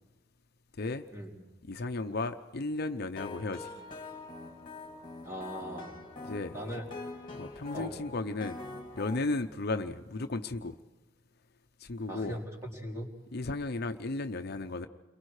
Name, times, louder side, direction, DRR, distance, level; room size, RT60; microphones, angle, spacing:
voice 1, 1.7-3.7 6.2-6.8 7.4-8.6 8.9-10.8 11.8-12.4 13.3-14.9, left 2 dB, 55° left, 8 dB, 0.8 m, -34 dB
sound 1, 3.2-9.2, left 3 dB, 25° left, 2.5 m, -44 dB
voice 2, 5.2-6.0 6.5-6.8 7.7-7.9 12.1-12.4 12.7-13.1, equal, 15° right, -1 dB, 4.2 m, -39 dB
30.0 x 23.0 x 4.9 m, 1.1 s
head